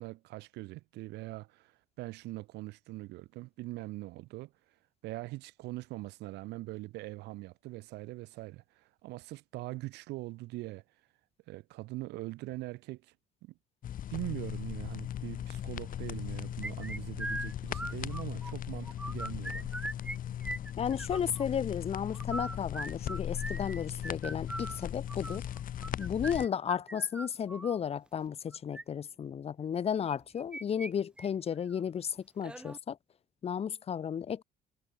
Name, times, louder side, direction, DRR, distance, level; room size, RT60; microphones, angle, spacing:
voice 1, 0.0-4.5 5.0-10.8 11.5-13.1 13.4-13.5 14.1-19.7, right 19 dB, 85° right, 1.1 m, -42 dB
sound 1, 13.8-26.5, left 10 dB, 55° left, 2.3 m, -38 dB
sound 2, 16.6-18.5 18.9-20.2 20.4-21.5 22.1-27.8 28.5-28.8 30.1-30.9 31.2-31.3 31.7-31.8 32.4-32.8, right 1 dB, 5° right, 0.4 m, -40 dB
voice 2, 20.8-25.4 26.0-33.0 33.4-34.4, left 8 dB, 35° left, 0.9 m, -33 dB
cardioid pair, 110°, 17 cm